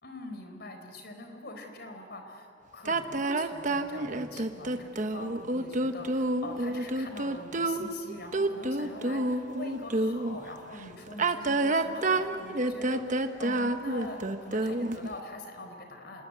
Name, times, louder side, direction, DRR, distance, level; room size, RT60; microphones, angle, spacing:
voice 1, 0.0-16.2, left 2 dB, 60° left, 5 dB, 4.3 m, -44 dB
sound 1, 2.9-10.4 11.1-15.1, right 2 dB, 45° right, 1.2 m, -29 dB
27.0 x 20.5 x 9.2 m, 2.7 s
head